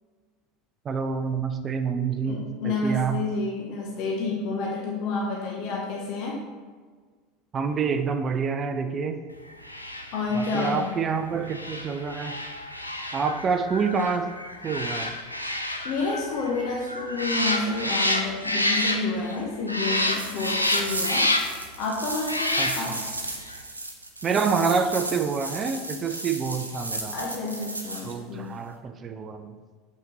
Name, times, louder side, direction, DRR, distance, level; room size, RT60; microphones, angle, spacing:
voice 1, 0.9-3.2 7.5-9.2 10.3-12.4 13.1-14.3 14.6-15.1 22.6-22.8 24.2-27.1 28.0-29.5, right 5 dB, 30° right, 7 dB, 0.4 m, -27 dB
voice 2, 2.3-6.5 10.1-10.9 11.3-11.4 15.8-21.3 21.8-23.0 27.1-28.5, left 3 dB, 50° left, -1 dB, 0.8 m, -29 dB
sound 1, 9.6-19.4 19.7-21.7 22.2-23.1 23.4-23.5, left 1 dB, 90° left, 0.4 m, -29 dB
sound 2, 20.0-28.1, right 2 dB, 85° right, 0.6 m, -35 dB
6.7 x 5.7 x 2.9 m, 1.5 s
figure-of-eight pair, 75°, 0 cm